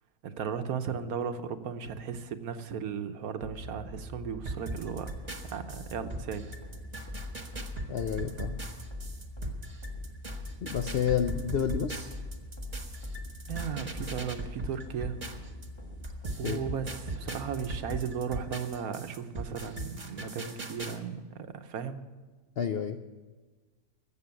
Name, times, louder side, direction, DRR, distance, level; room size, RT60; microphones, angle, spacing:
voice 1, 0.2-5.2 5.5-6.5 13.5-15.2 16.4-22.0, right 7 dB, 65° right, 9 dB, 1.3 m, -36 dB
sound 1, 3.4-18.1, left 1 dB, 15° left, 1.4 m, -42 dB
sound 2, 4.5-15.7 16.0-21.0, right 2 dB, 25° right, 1.2 m, -39 dB
voice 2, 7.9-8.6 10.6-12.1 16.4-16.6 22.6-23.0, left 8 dB, 85° left, 8 dB, 0.5 m, -30 dB
14.0 x 7.8 x 9.6 m, 1.3 s
omnidirectional pair, 1.8 m